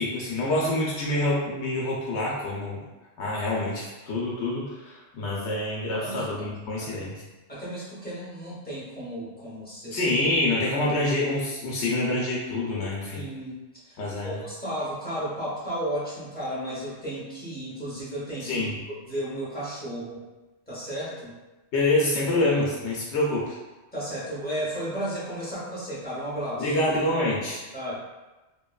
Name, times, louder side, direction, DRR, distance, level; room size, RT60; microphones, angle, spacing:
voice 1, 0.0-2.8 3.2-7.1 9.9-13.2 14.0-14.4 18.4-18.8 21.7-23.6 26.6-27.6, left 1 dB, 70° left, -5 dB, 0.9 m, -26 dB
voice 2, 5.9-6.5 6.8-7.1 7.5-10.1 13.1-13.5 13.9-14.0 14.2-18.7 19.0-20.2 20.7-21.3 23.9-26.7 27.7-28.0, right 1 dB, 10° left, -8 dB, 0.6 m, -34 dB
2.9 x 2.2 x 2.2 m, 1.1 s
omnidirectional pair, 1.3 m